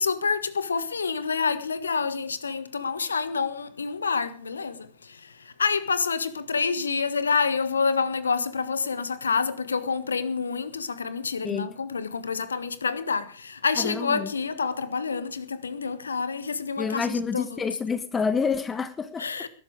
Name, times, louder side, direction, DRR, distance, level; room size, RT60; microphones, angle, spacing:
voice 1, 0.0-17.6 19.2-19.5, left 5 dB, 75° left, 1.4 m, -28 dB
voice 2, 13.8-14.3 16.8-19.3, left 5 dB, 15° left, 1.3 m, -28 dB
20.5 x 12.0 x 4.8 m
figure-of-eight pair, 90°, 0 cm